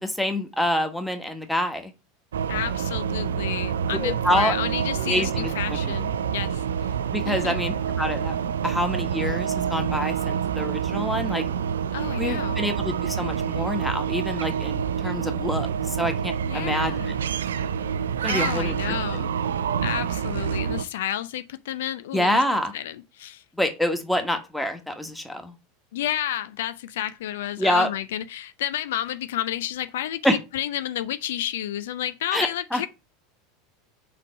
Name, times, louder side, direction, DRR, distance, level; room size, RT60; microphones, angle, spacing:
voice 1, 0.0-1.9 3.9-4.5 5.0-5.5 5.8-5.9 7.1-8.3 8.6-11.4 12.2-17.1 18.2-18.9 22.1-22.7 23.6-25.5 27.6-27.9 30.2-30.4 32.3-32.8, left 1 dB, 5° left, 1.4 m, -26 dB
sound 1, 2.3-20.8, right 8 dB, 80° right, 0.5 m, -27 dB
voice 2, 2.5-7.0 7.3-7.6 11.9-12.6 16.5-17.1 18.2-19.3 19.8-23.4 25.9-32.9, left 12 dB, 70° left, 0.4 m, -31 dB
4.7 x 4.1 x 5.1 m
hypercardioid pair, 85°, 0 cm